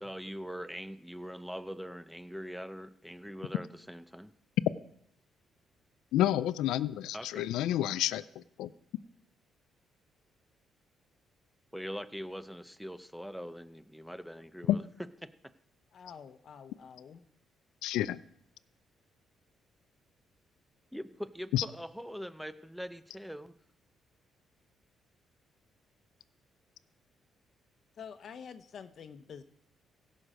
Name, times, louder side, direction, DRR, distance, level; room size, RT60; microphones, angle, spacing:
voice 1, 0.0-4.3 7.1-7.5 11.7-14.8 20.9-23.5, equal, ahead, 12 dB, 0.7 m, -42 dB
voice 2, 6.1-8.2 8.6-8.7 14.7-14.8 17.8-18.2 21.5-21.6, left 13 dB, 90° left, 16 dB, 0.3 m, -29 dB
voice 3, 15.9-17.3 28.0-29.4, left 7 dB, 60° left, 10 dB, 0.9 m, -48 dB
16.5 x 6.4 x 5.1 m, 0.69 s
cardioid pair, 90°, 0 cm